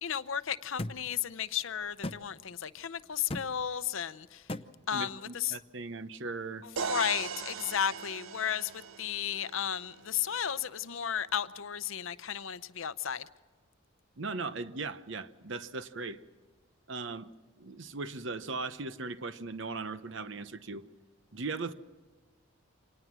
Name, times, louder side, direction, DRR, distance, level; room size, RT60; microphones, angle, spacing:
voice 1, 0.0-4.4 4.9-5.5 6.9-8.7 9.0-13.3, left 9 dB, 75° left, 0.7 m, -34 dB
sound 1, 0.8-1.0 2.0-2.2 3.3-3.5 4.5-4.7, left 1 dB, 25° left, 0.7 m, -35 dB
voice 2, 4.9-6.7 14.2-16.2 16.9-17.3 17.6-20.9 21.3-21.7, right 3 dB, 65° right, 0.9 m, -38 dB
sound 2, 6.8-10.6, right 6 dB, 85° right, 0.7 m, -40 dB
26.5 x 19.0 x 6.2 m
head